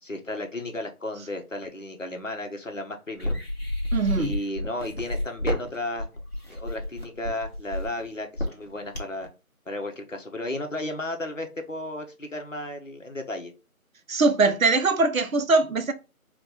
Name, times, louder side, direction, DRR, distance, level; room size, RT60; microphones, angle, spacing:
voice 1, 0.0-3.4 4.1-6.1 6.5-9.3 9.7-13.5, left 1 dB, 60° left, 1.1 m, -34 dB
sound 1, 3.2-9.2, left 1 dB, 45° left, 1.4 m, -30 dB
voice 2, 3.9-4.3 14.1-15.9, right 3 dB, 70° right, 0.7 m, -22 dB
4.9 x 2.4 x 3.8 m
figure-of-eight pair, 170°, 43 cm